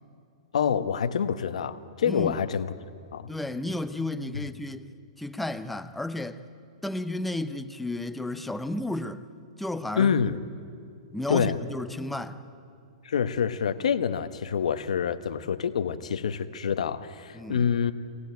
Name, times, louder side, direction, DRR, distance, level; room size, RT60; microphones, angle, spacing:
voice 1, 0.5-2.7 3.1-3.3 4.3-4.4 10.0-10.3 11.3-11.6 13.0-17.9, left 7 dB, 90° left, 1.1 m, -26 dB
voice 2, 2.0-2.4 3.3-6.4 6.8-9.2 9.6-10.4 11.1-12.5 17.3-17.7, left 2 dB, 5° left, 0.6 m, -33 dB
22.5 x 18.0 x 9.3 m
hypercardioid pair, 155°, 3 cm